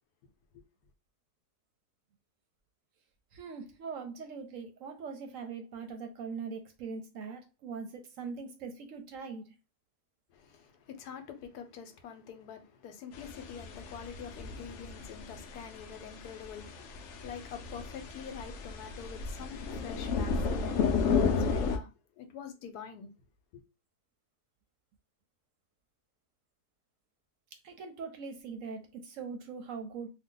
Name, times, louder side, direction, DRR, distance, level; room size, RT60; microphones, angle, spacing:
voice 1, 3.3-9.4 27.6-30.1, right 5 dB, 65° right, 0.9 m, -41 dB
voice 2, 10.3-21.9 22.2-23.1 23.5-23.6, left 7 dB, 90° left, 1.2 m, -46 dB
sound 1, 13.1-21.8, left 5 dB, 70° left, 0.7 m, -33 dB
2.7 x 2.2 x 3.7 m
omnidirectional pair, 1.7 m